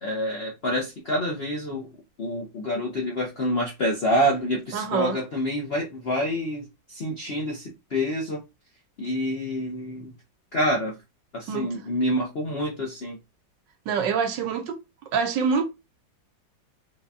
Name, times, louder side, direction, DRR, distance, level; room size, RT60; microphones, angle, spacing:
voice 1, 0.0-1.9 2.2-8.4 9.0-10.1 10.5-11.0 11.3-13.2, equal, 60° left, 0.6 m, -27 dB
voice 2, 4.7-5.2 11.5-11.7 13.9-14.8 15.1-15.6, right 6 dB, 75° right, 1.4 m, -25 dB
5.0 x 2.3 x 2.6 m
omnidirectional pair, 2.0 m